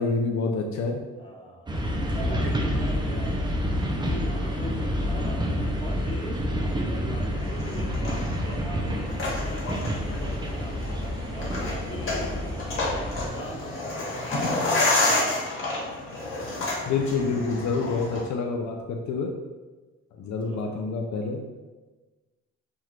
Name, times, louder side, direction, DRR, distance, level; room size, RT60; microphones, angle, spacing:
voice 1, 0.0-1.0 16.9-19.3 20.1-21.5, left 4 dB, 65° left, 1 dB, 0.5 m, -27 dB
voice 2, 1.1-1.7 2.1-6.4 6.6-10.9 11.3-12.5 13.2-15.4 20.4-20.7, equal, 15° left, -2 dB, 0.8 m, -41 dB
sound 1, 1.7-13.3, equal, 15° right, 0.4 m, -28 dB
sound 2, 7.4-18.3, left 2 dB, 45° left, 1.3 m, -30 dB
3.0 x 2.4 x 3.2 m, 1.2 s
cardioid pair, 90°, 30 cm